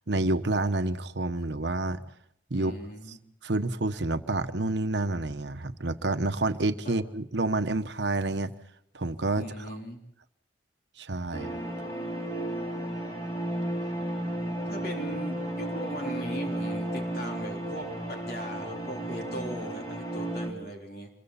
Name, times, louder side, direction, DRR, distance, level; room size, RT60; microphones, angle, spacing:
voice 1, 0.1-2.0 2.5-2.8 3.4-8.5 8.9-9.7 11.0-11.6, right 2 dB, 70° right, 9 dB, 1.1 m, -29 dB
voice 2, 2.5-3.2 6.8-7.0 9.4-10.0 14.7-21.1, equal, 55° left, 1 dB, 3.7 m, -39 dB
sound 1, 11.3-20.5, right 1 dB, 20° left, 4.8 m, -33 dB
27.0 x 22.5 x 4.2 m, 0.76 s
head